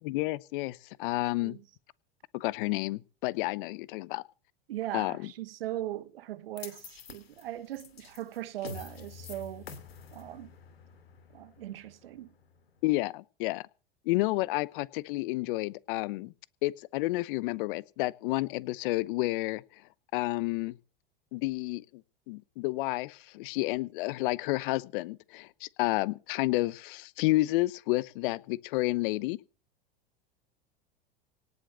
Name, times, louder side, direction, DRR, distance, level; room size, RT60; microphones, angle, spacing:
voice 1, 0.0-1.6 2.3-4.2 4.9-5.3 12.8-13.7 14.0-16.3 16.6-19.8 20.1-20.8 21.3-22.0 22.3-29.4, left 20 dB, 60° left, 0.9 m, -30 dB
voice 2, 4.7-9.7 10.1-10.5 11.3-12.3, right 13 dB, 75° right, 1.3 m, -39 dB
sound 1, 6.6-12.8, left 6 dB, 85° left, 2.9 m, -48 dB
18.5 x 7.9 x 6.9 m
hypercardioid pair, 90°, 30 cm